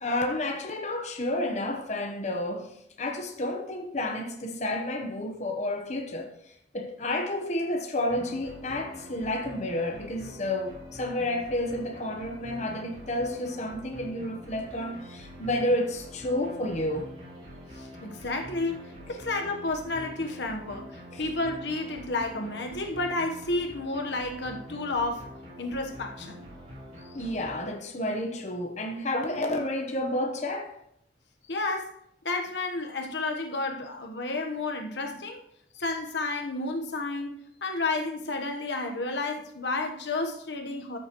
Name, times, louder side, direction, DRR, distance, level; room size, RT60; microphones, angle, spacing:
voice 1, 0.0-6.3 6.7-17.1 21.1-21.2 27.0-30.8 35.7-35.8, left 1 dB, 40° left, 0.9 m, -30 dB
sound 1, 8.1-27.6, equal, 40° right, 4.4 m, -45 dB
voice 2, 17.7-25.3 25.6-26.5 31.5-32.0 32.2-35.4 35.8-41.0, left 2 dB, 75° left, 1.1 m, -31 dB
13.0 x 7.2 x 3.0 m
head